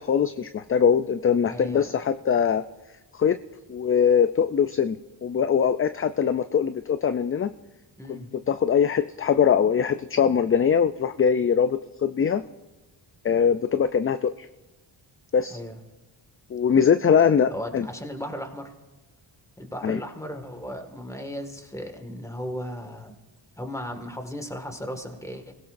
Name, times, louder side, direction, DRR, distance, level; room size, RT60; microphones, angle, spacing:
voice 1, 0.0-2.6 3.1-3.4 3.7-5.0 5.2-7.5 8.1-8.2 8.5-12.4 13.2-14.5 15.3-15.6 16.5-17.9 19.8-20.0, left 7 dB, 30° left, 11 dB, 0.4 m, -22 dB
voice 2, 1.5-1.9 8.0-8.3 15.5-15.8 17.5-18.7 19.6-23.2 23.6-25.5, equal, 5° left, 5 dB, 1.9 m, -36 dB
28.5 x 16.5 x 2.6 m, 1.1 s
cardioid pair, 90°, 48 cm